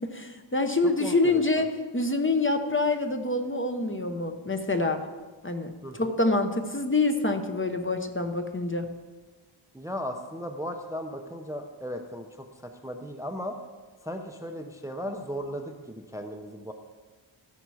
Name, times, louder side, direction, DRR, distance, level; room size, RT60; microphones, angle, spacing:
voice 1, 0.0-5.0 5.4-8.9, left 2 dB, 25° left, 6 dB, 0.8 m, -26 dB
voice 2, 1.0-1.6 5.8-6.2 9.7-12.5 12.8-13.5 14.0-16.7, equal, 5° right, 5 dB, 0.6 m, -36 dB
14.5 x 5.9 x 4.8 m, 1.3 s
wide cardioid pair, 75°, 49 cm